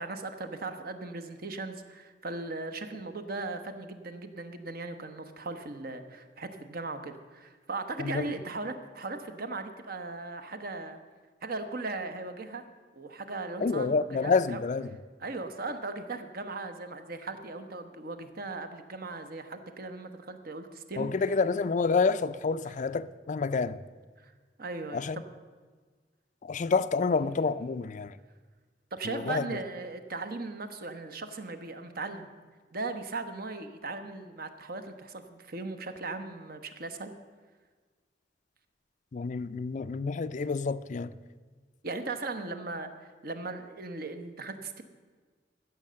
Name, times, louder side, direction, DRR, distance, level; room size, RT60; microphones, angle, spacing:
voice 1, 0.0-11.0 11.4-12.6 13.0-14.6 15.2-21.4 24.2-24.3 24.6-25.2 28.9-32.3 32.7-37.1 41.8-44.8, right 3 dB, 55° right, 1.1 m, -38 dB
voice 2, 13.6-14.9 21.0-23.8 24.9-25.2 26.4-28.1 29.1-29.4 39.1-41.1, left 4 dB, 40° left, 0.4 m, -28 dB
14.5 x 6.8 x 7.5 m
head